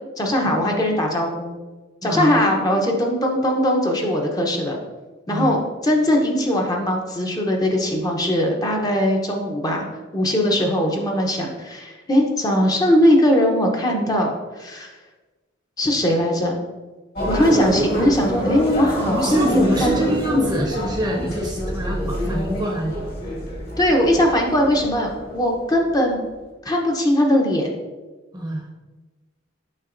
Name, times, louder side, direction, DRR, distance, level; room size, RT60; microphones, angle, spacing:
voice 1, 0.2-1.6 2.0-4.8 5.3-9.9 10.1-14.9 15.8-16.6 17.3-20.1 23.8-26.2 26.6-27.7, equal, 20° left, 1 dB, 0.7 m, -20 dB
voice 2, 2.0-2.4 5.3-5.6 19.1-22.9 28.3-28.6, equal, 20° right, 0 dB, 0.7 m, -25 dB
sound 1, 17.2-26.1, equal, 50° left, 2.0 m, -26 dB
7.3 x 5.5 x 2.6 m, 1.2 s
head